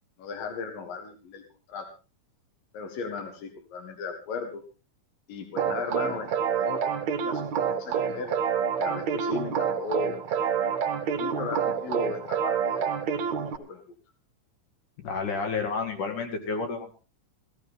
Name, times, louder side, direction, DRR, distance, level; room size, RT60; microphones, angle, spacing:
voice 1, 0.2-1.4 1.7-1.9 2.7-4.6 5.3-8.3 8.8-13.2 13.6-13.8, left 5 dB, 90° left, 5 dB, 3.4 m, -36 dB
sound 1, 5.6-13.6, right 7 dB, 60° right, 2.5 m, -28 dB
voice 2, 15.0-16.9, left 4 dB, 70° left, 4 dB, 3.9 m, -30 dB
16.5 x 15.5 x 3.7 m, 0.33 s
omnidirectional pair, 3.9 m